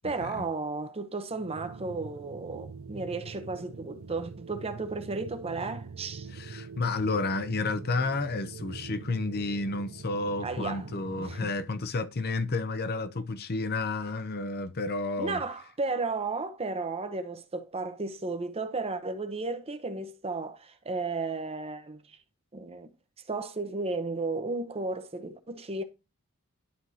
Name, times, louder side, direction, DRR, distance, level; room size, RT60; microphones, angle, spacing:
voice 1, 0.0-6.3 10.4-10.8 11.2-11.5 15.2-22.2 22.5-22.9 23.3-25.8, right 3 dB, 25° right, 0.8 m, -34 dB
sound 1, 1.3-11.6, right 4 dB, 65° right, 0.5 m, -44 dB
voice 2, 6.3-15.4, left 3 dB, 45° left, 0.7 m, -31 dB
11.5 x 4.7 x 2.8 m
head